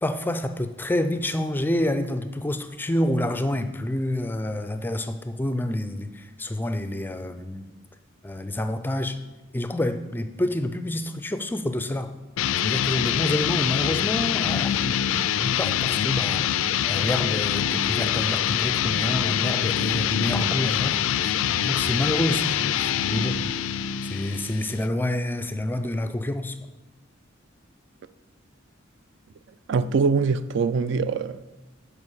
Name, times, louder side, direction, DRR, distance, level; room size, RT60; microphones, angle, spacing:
voice 1, 0.0-7.7 8.2-9.2 9.5-12.1 12.6-14.9 15.4-21.0 21.2-21.4 21.6-23.4 24.0-26.6, left 1 dB, 10° left, 0.4 m, -28 dB
sound 1, 12.4-24.9, left 10 dB, 85° left, 0.3 m, -25 dB
voice 2, 29.7-31.4, right 5 dB, 60° right, 0.3 m, -23 dB
7.3 x 5.1 x 6.3 m
head